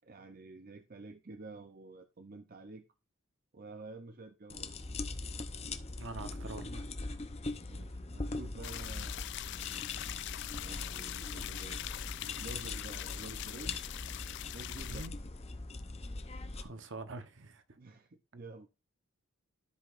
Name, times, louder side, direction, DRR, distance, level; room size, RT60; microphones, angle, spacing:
voice 1, 0.0-2.8 3.5-4.7 7.7-9.4 10.6-13.9 14.5-15.1 17.8-18.7, right 3 dB, 40° right, 0.6 m, -50 dB
sound 1, 4.5-16.6, left 3 dB, 30° left, 0.7 m, -41 dB
voice 2, 6.0-6.9 14.9-15.1 16.5-17.6, right 3 dB, 60° right, 1.0 m, -44 dB
sound 2, 8.6-15.1, left 15 dB, 55° left, 0.3 m, -42 dB
13.5 x 5.1 x 2.5 m
head